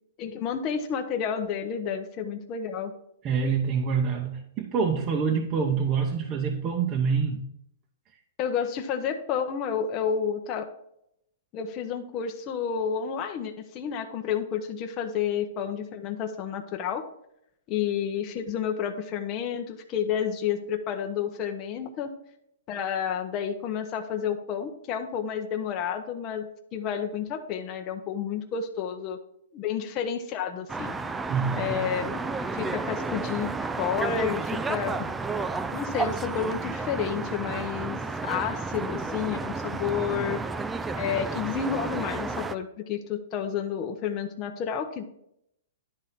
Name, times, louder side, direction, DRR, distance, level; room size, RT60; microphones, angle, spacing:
voice 1, 0.2-2.9 8.4-10.7 11.5-17.0 17.7-22.1 22.7-29.2 29.5-31.0 31.5-32.2 32.5-33.5 33.8-35.0 35.7-40.4 40.9-45.0, left 7 dB, 25° left, 0.7 m, -30 dB
voice 2, 3.2-7.5 31.3-31.8, right 6 dB, 25° right, 0.7 m, -26 dB
sound 1, 30.7-42.5, right 4 dB, 10° right, 0.3 m, -32 dB
10.5 x 3.8 x 5.7 m
hypercardioid pair, 160°, 0 cm